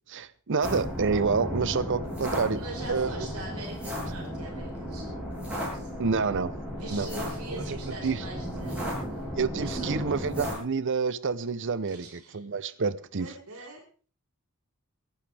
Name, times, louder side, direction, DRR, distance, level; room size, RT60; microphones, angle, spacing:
voice 1, 0.1-2.6 2.9-3.1 6.0-6.5 6.9-7.1 7.5-8.2 9.3-13.3, right 5 dB, 55° right, 0.7 m, -28 dB
sound 1, 0.6-10.6, equal, 5° right, 7.0 m, -34 dB
voice 2, 2.5-5.2 5.7-5.9 6.7-9.2 9.5-10.0 11.9-12.4 13.2-13.8, right 1 dB, 90° right, 4.8 m, -42 dB
23.0 x 11.5 x 3.4 m
head